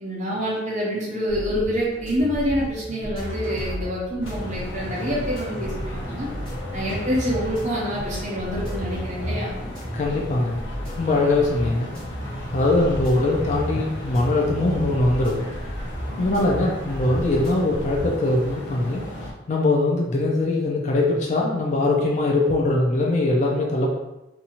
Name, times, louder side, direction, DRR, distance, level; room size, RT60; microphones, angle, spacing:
voice 1, 0.0-6.3 6.7-9.6 16.2-16.5, equal, 40° right, -5 dB, 0.6 m, -27 dB
sound 1, 1.3-18.1, equal, 5° left, 1.2 m, -34 dB
sound 2, 4.2-19.3, left 1 dB, 70° left, 0.7 m, -35 dB
voice 2, 9.9-10.6 11.0-11.9 12.5-15.5 16.2-19.0 19.5-23.9, left 2 dB, 40° left, -2 dB, 0.4 m, -21 dB
2.7 x 2.3 x 2.9 m, 0.96 s
head